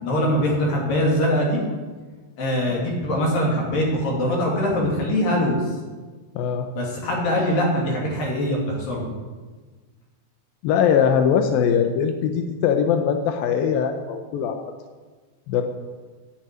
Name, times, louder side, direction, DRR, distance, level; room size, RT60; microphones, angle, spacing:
voice 1, 0.0-1.6 2.4-5.8 6.7-9.1, equal, 55° left, -2 dB, 4.1 m, -22 dB
voice 2, 6.4-6.7 10.6-14.6 15.5-15.6, left 7 dB, 85° left, 6 dB, 2.0 m, -21 dB
9.5 x 7.0 x 9.0 m, 1.3 s
omnidirectional pair, 5.1 m